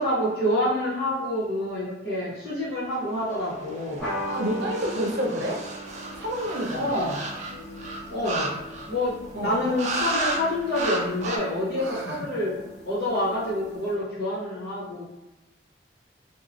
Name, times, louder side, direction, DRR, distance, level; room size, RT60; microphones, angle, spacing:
voice 1, 0.0-4.1 6.7-7.2 8.1-8.6 8.9-12.5 12.8-15.0, left 1 dB, 60° left, -8 dB, 1.3 m, -27 dB
sound 1, 3.5-9.1 9.8-10.4 10.7-11.4, right 2 dB, 40° right, 0.4 m, -33 dB
sound 2, 4.0-8.9, equal, 5° left, 0.9 m, -38 dB
voice 2, 4.3-5.6 6.1-7.0 9.3-9.6 11.8-12.2, equal, 80° right, -1 dB, 0.6 m, -29 dB
sound 3, 5.8-14.0, left 2 dB, 75° left, 1.0 m, -45 dB
2.8 x 2.3 x 2.6 m, 0.99 s
head